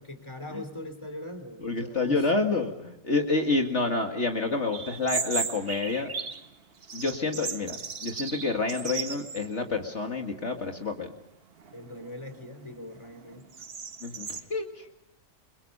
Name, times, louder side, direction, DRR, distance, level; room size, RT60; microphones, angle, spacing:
voice 1, 0.0-2.3 11.7-13.6, left 1 dB, 20° left, 8 dB, 3.3 m, -41 dB
voice 2, 1.6-6.1 6.9-11.1 14.0-14.8, left 3 dB, 50° left, 3 dB, 2.2 m, -28 dB
sound 1, 4.7-6.5 6.8-9.5 9.9-10.0 10.7-11.1 11.6-14.4, right 5 dB, 45° right, 1.3 m, -36 dB
29.5 x 23.0 x 5.4 m, 0.88 s
omnidirectional pair, 1.6 m